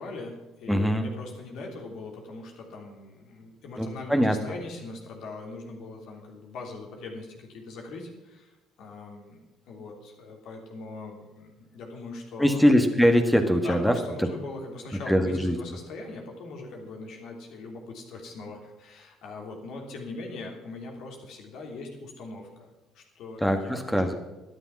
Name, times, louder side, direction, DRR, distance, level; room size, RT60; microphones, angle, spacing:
voice 1, 0.0-12.6 13.5-23.8, left 3 dB, 60° left, 1 dB, 3.2 m, -41 dB
voice 2, 0.7-1.1 3.8-4.3 12.4-13.9 14.2-14.3 15.1-15.6 23.4-24.1, equal, ahead, 5 dB, 1.7 m, -22 dB
13.5 x 9.9 x 6.0 m, 1.1 s
hypercardioid pair, 55°, 0 cm